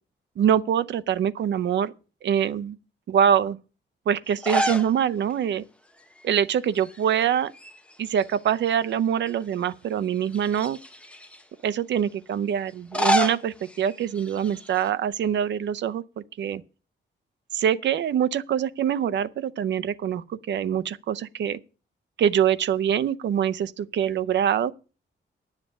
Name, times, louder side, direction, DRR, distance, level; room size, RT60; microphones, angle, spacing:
voice 1, 0.4-1.9 2.2-2.8 3.1-3.6 4.1-5.6 6.2-7.5 8.0-10.8 11.6-16.0 16.4-16.6 17.5-21.6 22.2-24.7, right 9 dB, 70° right, 0.6 m, -24 dB
sound 1, 4.3-5.0 5.3-5.4 6.7-7.2 7.5-8.7 9.3-9.4 10.3-11.4 12.7-14.9, equal, 5° left, 0.9 m, -29 dB
10.0 x 7.5 x 7.3 m
wide cardioid pair, 170°, 19 cm